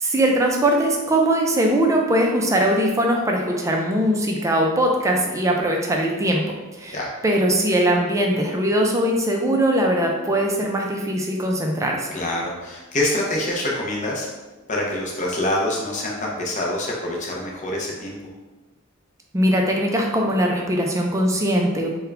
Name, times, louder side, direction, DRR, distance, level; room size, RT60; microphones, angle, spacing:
voice 1, 0.0-6.5 6.8-7.0 7.2-12.1 19.3-21.9, right 1 dB, 15° right, 1 dB, 0.4 m, -21 dB
voice 2, 12.1-14.3 14.7-18.2, left 1 dB, 35° left, -2 dB, 0.6 m, -25 dB
3.5 x 2.2 x 3.3 m, 1.2 s
head